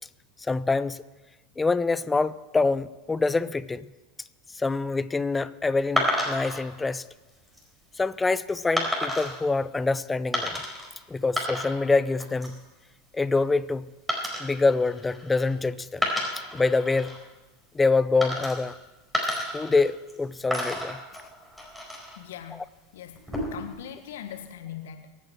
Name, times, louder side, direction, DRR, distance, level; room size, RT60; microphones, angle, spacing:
voice 1, 0.4-1.0 1.6-3.9 4.5-7.0 8.0-10.6 11.1-12.6 13.1-13.9 14.4-16.1 16.5-17.2 17.7-18.7 19.5-21.0, left 3 dB, 15° left, 16 dB, 0.6 m, -25 dB
sound 1, 6.0-6.6 7.3-7.6 8.8-9.4 10.3-10.9 11.2-11.9 12.2-12.6 14.1-15.5 15.9-17.2 18.2-18.8 19.1-20.2 20.5-22.2 23.1-23.7, equal, 5° right, 4.3 m, -30 dB
voice 2, 22.1-22.6 22.9-23.2 23.5-25.1, left 10 dB, 65° left, 7 dB, 1.6 m, -40 dB
23.5 x 9.3 x 4.6 m, 1.1 s
figure-of-eight pair, 80°, 0 cm